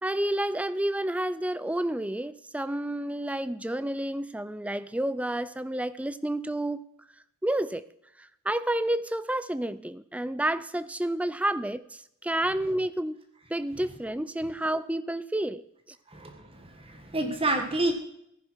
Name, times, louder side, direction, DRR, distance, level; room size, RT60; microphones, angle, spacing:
voice 1, 0.0-6.8 7.4-7.8 8.2-13.2 13.5-15.6, right 1 dB, 5° right, 15 dB, 0.4 m, -30 dB
voice 2, 16.1-17.9, right 2 dB, 25° right, 5 dB, 1.4 m, -29 dB
15.0 x 10.5 x 4.6 m, 0.75 s
head